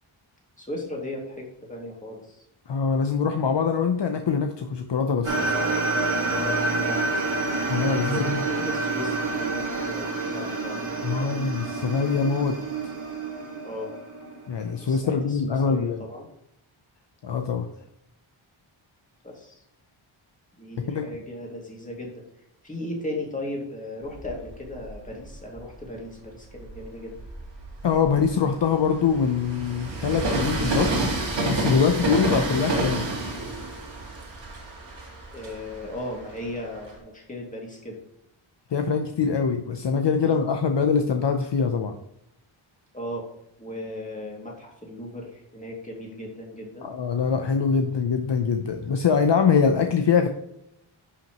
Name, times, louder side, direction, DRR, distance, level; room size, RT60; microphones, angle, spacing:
voice 1, 0.6-2.4 6.3-7.3 8.0-11.3 13.6-14.0 14.8-16.3 19.2-19.6 20.6-22.2 22.6-27.1 35.3-38.0 40.2-40.4 42.9-43.3 43.6-46.9, left 1 dB, 15° left, -1 dB, 2.3 m, -36 dB
voice 2, 2.7-5.5 7.7-8.4 11.0-12.6 14.5-16.0 17.2-17.7 20.9-21.1 27.8-30.9 31.4-33.1 38.7-41.9 46.8-50.3, left 6 dB, 60° left, 5 dB, 0.8 m, -23 dB
sound 1, 5.2-14.7, right 3 dB, 80° right, 2.0 m, -28 dB
Train, 24.1-25.8 26.4-37.0, right 2 dB, 60° right, 2.2 m, -30 dB
11.0 x 5.8 x 3.0 m, 0.78 s
wide cardioid pair, 130°, 49 cm